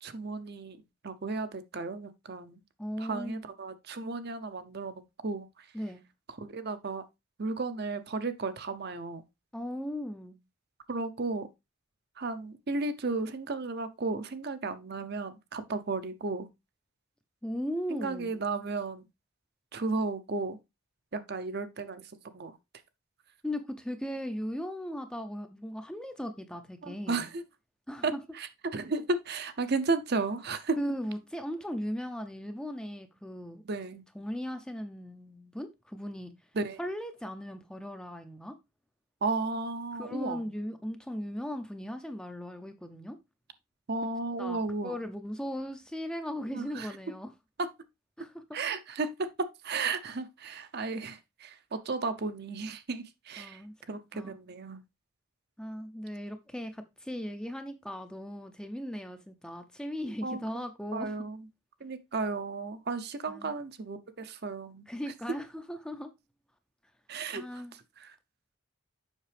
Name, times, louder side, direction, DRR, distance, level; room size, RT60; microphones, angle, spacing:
voice 1, 0.0-2.6 3.0-5.5 6.4-7.0 7.4-9.2 10.9-11.5 12.2-16.5 17.9-19.0 19.7-20.6 21.1-22.0 22.3-22.5 26.8-27.4 28.0-28.1 28.4-30.8 33.7-34.0 36.6-36.8 39.2-40.4 43.9-45.0 46.5-46.9 47.6-47.7 48.5-49.3 49.6-53.6 53.9-54.8 60.2-60.4 60.9-61.4 61.8-64.8 67.1-67.4 68.0-68.1, right 3 dB, 45° right, 0.6 m, -34 dB
voice 2, 2.8-3.4 5.7-6.0 9.5-10.4 17.4-18.3 23.4-27.3 27.9-28.2 30.8-33.6 34.1-36.3 36.8-38.6 39.9-43.2 44.4-47.3 48.2-48.6 53.4-54.4 55.6-61.1 63.3-63.5 64.9-66.1 67.3-67.7, equal, 5° left, 0.5 m, -38 dB
7.3 x 5.7 x 3.3 m
head